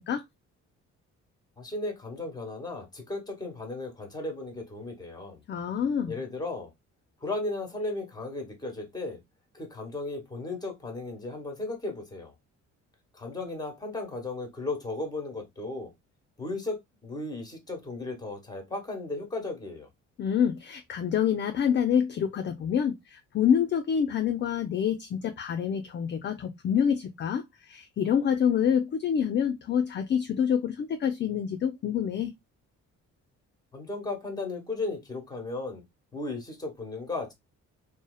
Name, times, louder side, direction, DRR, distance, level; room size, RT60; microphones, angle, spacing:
voice 1, 1.6-5.4 6.1-6.7 7.2-9.2 9.5-12.3 13.1-15.9 16.4-19.9 33.7-35.8 36.1-37.3, left 2 dB, 15° left, 1.0 m, -35 dB
voice 2, 5.5-6.2 20.2-32.3, left 8 dB, 40° left, 0.4 m, -27 dB
2.7 x 2.1 x 2.3 m
cardioid pair, 90°, 30 cm